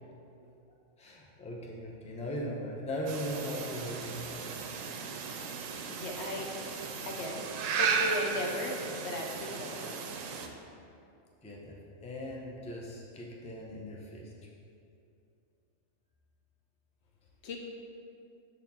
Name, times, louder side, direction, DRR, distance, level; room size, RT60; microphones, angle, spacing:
voice 1, 1.0-4.4 11.4-11.8 12.0-14.3, equal, 10° left, -2 dB, 0.4 m, -39 dB
sound 1, 3.1-10.5, right 5 dB, 75° right, 1.0 m, -35 dB
voice 2, 5.9-6.5 7.0-7.4 7.7-10.0 17.4-17.6, left 1 dB, 60° left, 1 dB, 0.9 m, -37 dB
6.8 x 4.2 x 4.2 m, 2.6 s
omnidirectional pair, 1.4 m